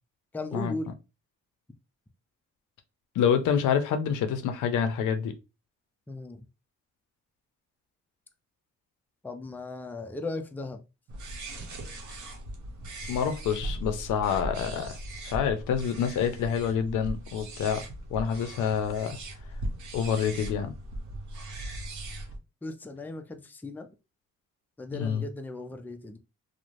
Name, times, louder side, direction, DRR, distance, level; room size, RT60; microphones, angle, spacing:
voice 1, 0.3-0.9 6.1-6.5 9.2-10.8 22.6-23.9 24.8-26.2, left 2 dB, 5° left, 0.4 m, -37 dB
voice 2, 3.2-5.3 13.1-15.0 15.2-17.8 18.1-19.2 19.9-20.7 24.9-25.2, left 7 dB, 85° left, 0.5 m, -27 dB
sound 1, 11.1-22.4, right 1 dB, 70° right, 0.8 m, -39 dB
3.0 x 2.1 x 2.5 m
cardioid pair, 85°, 30 cm